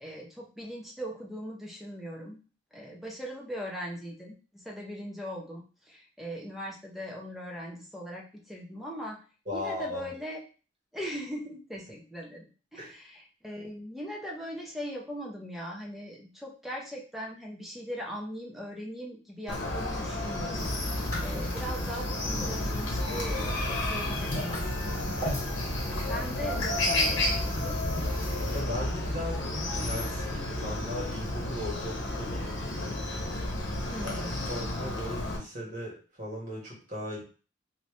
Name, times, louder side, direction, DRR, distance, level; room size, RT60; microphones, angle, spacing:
voice 1, 0.0-2.4 2.7-9.2 9.5-10.4 10.9-25.1 26.0-27.8 33.9-34.4, equal, ahead, -2 dB, 0.6 m, -40 dB
voice 2, 9.5-10.1 12.8-12.9 28.5-33.0 34.0-37.2, left 1 dB, 40° right, -4 dB, 1.5 m, -38 dB
Chicken rooster, 19.5-35.4, left 1 dB, 70° left, 0.9 m, -32 dB
sound 1, 20.6-28.6, equal, 20° left, 1.8 m, -36 dB
3.2 x 2.7 x 3.1 m, 0.37 s
head